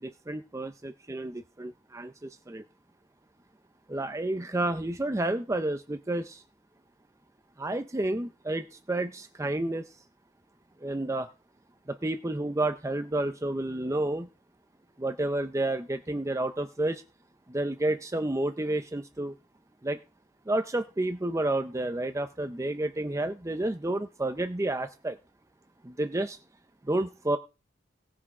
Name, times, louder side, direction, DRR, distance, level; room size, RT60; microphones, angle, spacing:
voice 1, 0.0-2.6 3.9-6.4 7.6-9.9 10.8-11.3 11.9-14.3 15.0-17.0 17.5-19.3 19.8-20.0 20.5-25.2 25.8-26.4 26.9-27.4, right 1 dB, 15° right, 8 dB, 0.5 m, -30 dB
17.5 x 6.0 x 4.8 m, 0.31 s
head